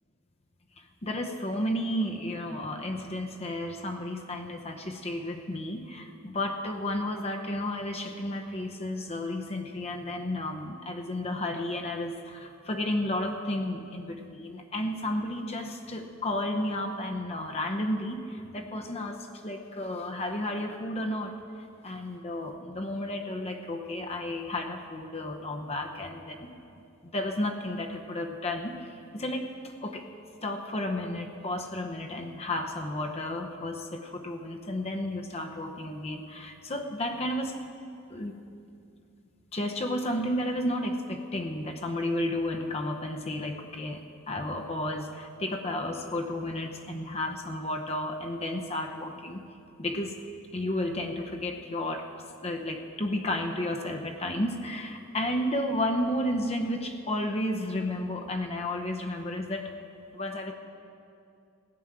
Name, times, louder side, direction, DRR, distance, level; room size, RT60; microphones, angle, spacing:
voice 1, 0.8-21.3 21.8-26.5 27.0-30.0 30.4-37.6 38.1-38.4 39.5-49.4 49.8-50.1 50.5-52.1 52.4-59.7 60.1-60.5, left 1 dB, 30° left, 3 dB, 0.8 m, -32 dB
16.0 x 6.2 x 8.7 m, 2.5 s
head